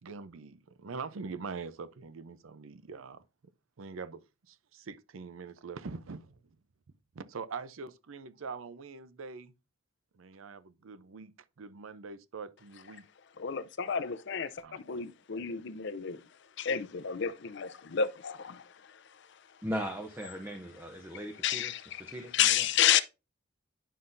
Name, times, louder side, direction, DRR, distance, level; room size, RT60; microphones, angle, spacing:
voice 1, 0.0-3.2 3.8-4.2 4.5-6.4 7.1-9.5 10.1-11.3 11.6-13.0 14.6-14.8, right 4 dB, 85° right, 0.6 m, -43 dB
voice 2, 13.4-16.2 16.6-19.0 21.4-22.0 22.3-23.0, left 9 dB, 60° left, 0.5 m, -30 dB
voice 3, 19.6-21.7 22.0-22.6, equal, 10° right, 0.6 m, -38 dB
10.0 x 5.5 x 2.6 m
head